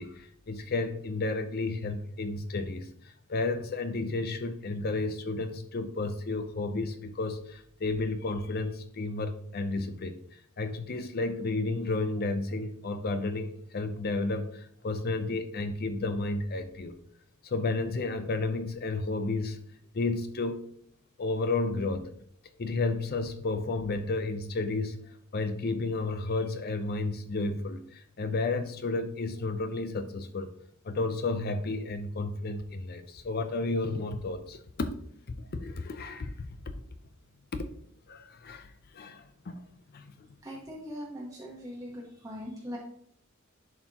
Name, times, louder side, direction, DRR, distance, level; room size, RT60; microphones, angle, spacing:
voice 1, 0.0-2.9 3.3-10.1 10.6-17.0 17.4-19.6 19.9-20.6 21.2-22.1 22.6-25.0 25.3-30.5 30.8-34.9 35.4-36.5 37.5-37.7 38.1-38.7 38.9-39.6 39.9-40.3, left 3 dB, 50° left, 9 dB, 0.5 m, -32 dB
voice 2, 40.4-42.8, equal, 15° right, -4 dB, 1.0 m, -40 dB
11.0 x 4.3 x 2.9 m, 0.66 s
head